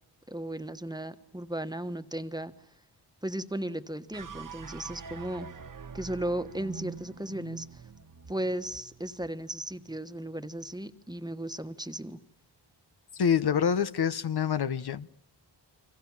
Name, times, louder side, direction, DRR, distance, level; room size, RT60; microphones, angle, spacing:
voice 1, 0.3-2.5 3.2-5.6 5.9-7.8 8.3-12.2, right 1 dB, 10° right, 1.4 m, -35 dB
sound 1, 4.1-10.5, right 6 dB, 50° right, 1.5 m, -45 dB
voice 2, 13.1-15.1, left 7 dB, 65° left, 1.1 m, -26 dB
29.5 x 25.5 x 7.4 m
wide cardioid pair, 95°, 42 cm